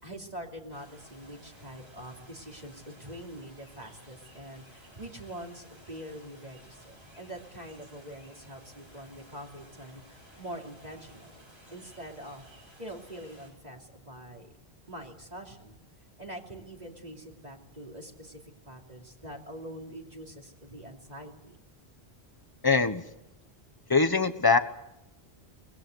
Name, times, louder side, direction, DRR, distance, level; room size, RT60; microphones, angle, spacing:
voice 1, 0.0-12.5 12.8-14.5 14.9-15.8 16.2-21.6, right 1 dB, 40° right, 0 dB, 3.2 m, -44 dB
sound 1, 0.7-13.5, equal, 75° right, 8.4 m, -56 dB
voice 2, 22.6-23.0 23.9-24.6, left 4 dB, 20° left, 10 dB, 1.2 m, -22 dB
23.5 x 20.5 x 8.0 m, 0.86 s
omnidirectional pair, 1.1 m